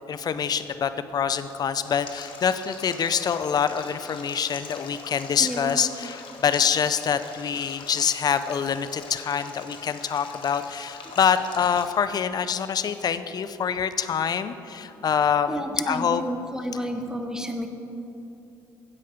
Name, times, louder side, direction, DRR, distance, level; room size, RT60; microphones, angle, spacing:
voice 1, 0.1-16.2, left 7 dB, 45° left, 12 dB, 0.5 m, -25 dB
Stream, 1.8-11.9, left 5 dB, 65° left, 1.2 m, -43 dB
voice 2, 5.4-5.8 15.5-17.7, equal, 5° right, 6 dB, 1.0 m, -31 dB
10.0 x 7.8 x 5.1 m, 3.0 s
supercardioid pair, 75°, 9 cm